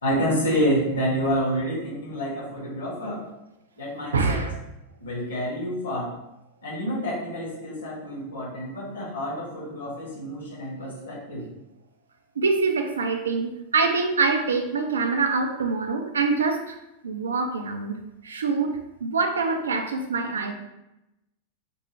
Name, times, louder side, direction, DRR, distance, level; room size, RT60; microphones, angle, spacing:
voice 1, 0.0-3.3 3.8-4.4 5.0-6.1 6.6-11.5, equal, 65° left, -3 dB, 1.3 m, -28 dB
voice 2, 4.1-4.5 12.4-16.7 17.0-20.5, right 4 dB, 70° right, 5 dB, 0.4 m, -25 dB
4.4 x 2.5 x 3.3 m, 0.90 s
figure-of-eight pair, 90°, 0 cm